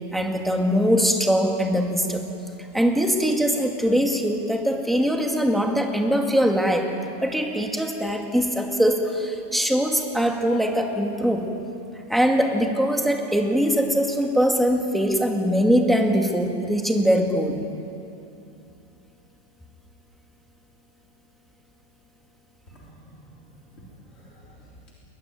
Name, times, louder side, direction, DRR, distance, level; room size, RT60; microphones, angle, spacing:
voice 1, 0.1-2.2 2.7-6.9 7.2-11.5 12.1-17.6, equal, ahead, 2 dB, 2.0 m, -22 dB
voice 2, 22.7-24.9, right 1 dB, 40° left, -5 dB, 4.1 m, -50 dB
21.5 x 21.0 x 9.5 m, 2.7 s
omnidirectional pair, 1.8 m